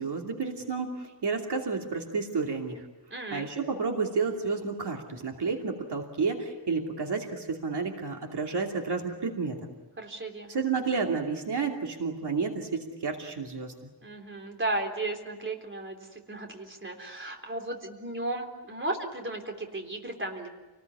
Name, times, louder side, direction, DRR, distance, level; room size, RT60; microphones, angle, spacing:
voice 1, 0.0-2.8 3.3-9.6 10.5-13.7, right 4 dB, 65° right, 1 dB, 2.8 m, -31 dB
voice 2, 3.1-3.5 10.0-10.5 14.0-20.6, right 2 dB, 25° right, 3 dB, 3.7 m, -35 dB
29.0 x 20.0 x 9.7 m, 1.2 s
wide cardioid pair, 175°, 43 cm